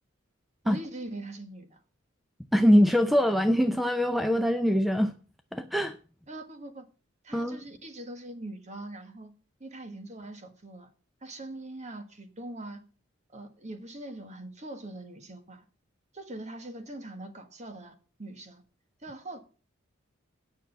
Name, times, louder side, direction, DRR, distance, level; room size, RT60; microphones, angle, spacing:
voice 1, 0.6-1.8 6.3-6.8 7.2-9.3 9.6-10.9 11.2-12.8 13.3-15.6 16.1-18.6 19.0-19.4, right 1 dB, 35° right, 1.5 m, -42 dB
voice 2, 2.5-5.1 5.5-6.0 7.3-7.6, equal, ahead, 0.5 m, -23 dB
9.4 x 6.1 x 7.0 m
head